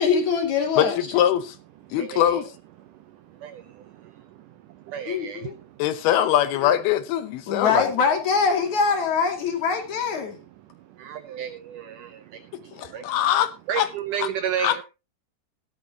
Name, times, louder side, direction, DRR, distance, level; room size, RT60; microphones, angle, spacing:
voice 1, 0.0-1.0 5.1-5.5 7.5-10.4 12.7-13.1, left 5 dB, 50° left, 4 dB, 3.6 m, -23 dB
voice 2, 0.8-1.6 1.9-2.5 5.8-7.9 12.8-13.9 14.2-14.3 14.6-14.8, left 11 dB, 75° left, 13 dB, 2.7 m, -22 dB
voice 3, 2.0-2.4 3.4-4.1 4.9-5.6 11.0-13.1 13.7-14.8, right 9 dB, 85° right, 11 dB, 1.8 m, -32 dB
15.5 x 12.5 x 2.9 m, 0.27 s
omnidirectional pair, 4.7 m